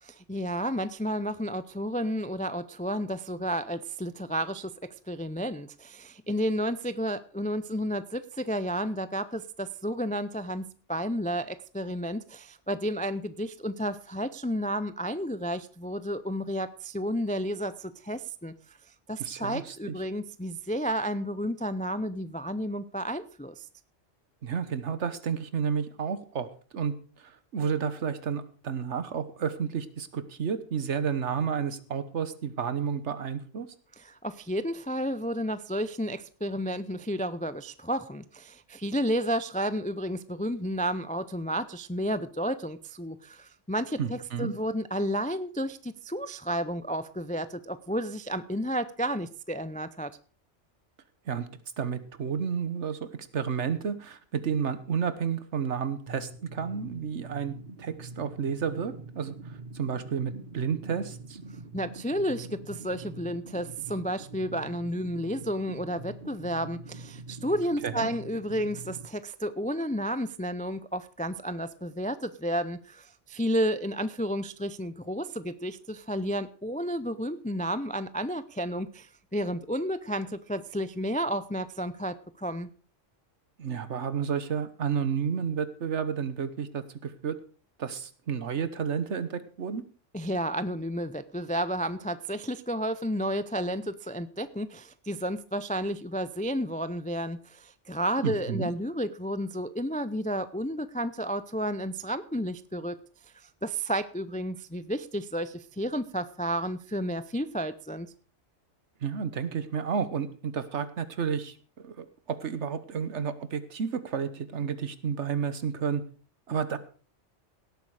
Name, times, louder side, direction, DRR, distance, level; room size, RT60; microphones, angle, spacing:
voice 1, 0.0-4.7 5.1-18.8 19.1-23.6 34.0-50.1 61.7-82.7 90.1-103.0 103.3-108.1, equal, 15° left, 14 dB, 0.3 m, -32 dB
voice 2, 19.2-19.9 24.4-33.7 44.0-44.5 51.3-51.5 51.8-61.4 67.8-68.1 83.6-87.4 87.8-89.8 98.2-98.7 109.0-111.6 111.8-116.0 116.5-116.8, right 7 dB, 70° right, 13 dB, 1.4 m, -31 dB
sound 1, 56.1-69.1, right 2 dB, 45° right, 1.3 m, -44 dB
17.5 x 8.4 x 4.8 m, 0.39 s
omnidirectional pair, 1.2 m